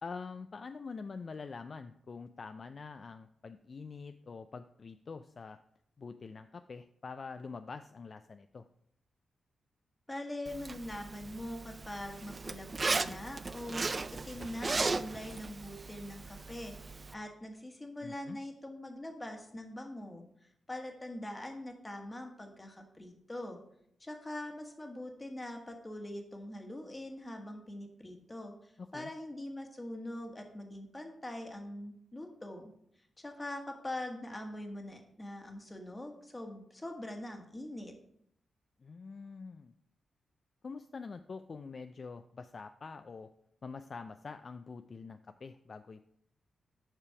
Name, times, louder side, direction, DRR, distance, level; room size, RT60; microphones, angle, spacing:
voice 1, 0.0-5.6 6.0-8.7 18.0-18.4 28.8-29.1 38.8-39.7 40.6-43.3 43.6-46.1, left 4 dB, 50° left, 9 dB, 0.3 m, -45 dB
voice 2, 10.1-20.2 20.7-23.6 24.0-32.7 33.2-37.9, left 1 dB, 20° left, 4 dB, 1.3 m, -43 dB
Zipper (clothing), 10.5-17.1, right 3 dB, 35° right, 0.4 m, -37 dB
7.3 x 5.1 x 4.7 m, 0.72 s
cardioid pair, 80°, 0 cm